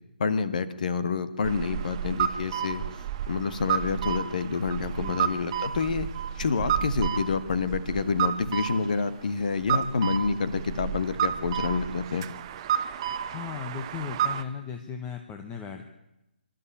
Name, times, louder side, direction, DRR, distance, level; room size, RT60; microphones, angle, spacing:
voice 1, 0.2-2.9 3.3-6.1 6.4-12.3, left 5 dB, 50° left, 12 dB, 1.8 m, -28 dB
sound 1, 1.4-14.4, right 9 dB, 30° right, 1.0 m, -31 dB
voice 2, 5.0-5.4 13.3-15.9, left 7 dB, 15° left, 4 dB, 1.3 m, -36 dB
27.0 x 13.0 x 8.7 m, 0.92 s
figure-of-eight pair, 145°, 6 cm